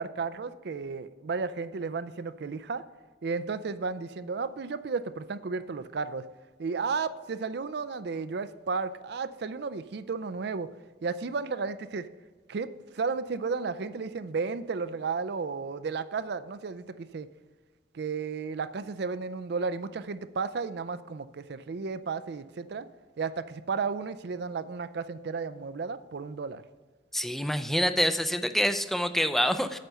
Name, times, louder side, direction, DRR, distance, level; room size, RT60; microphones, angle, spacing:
voice 1, 0.0-2.8 3.2-6.2 6.6-10.7 11.0-12.1 12.5-12.7 12.9-17.3 17.9-22.9 23.2-26.6, right 4 dB, 60° right, 13 dB, 0.4 m, -33 dB
voice 2, 27.1-29.8, equal, ahead, 9 dB, 0.4 m, -26 dB
9.1 x 6.5 x 5.5 m, 1.4 s
head